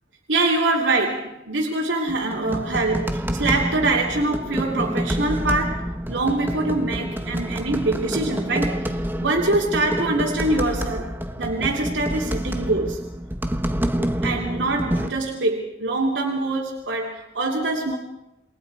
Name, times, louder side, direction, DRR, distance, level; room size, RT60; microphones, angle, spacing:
voice 1, 0.3-13.0 14.0-18.0, right 2 dB, 80° right, -1 dB, 3.0 m, -24 dB
sound 1, 2.1-15.1, equal, 10° right, 1.3 m, -27 dB
28.5 x 23.0 x 4.8 m, 0.90 s
head